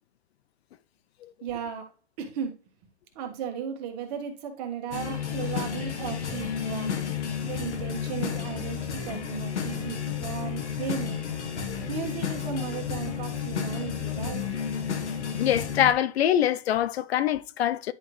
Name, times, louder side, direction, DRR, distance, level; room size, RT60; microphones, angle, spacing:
voice 1, 1.4-1.9 2.2-2.5 3.1-7.0 7.4-11.2 11.9-14.5, right 8 dB, 35° right, 1.4 m, -35 dB
sound 1, 4.9-15.9, left 8 dB, 90° left, 1.5 m, -32 dB
voice 2, 15.4-17.9, left 11 dB, 65° left, 0.5 m, -24 dB
10.0 x 3.6 x 3.0 m
hypercardioid pair, 155°, 34 cm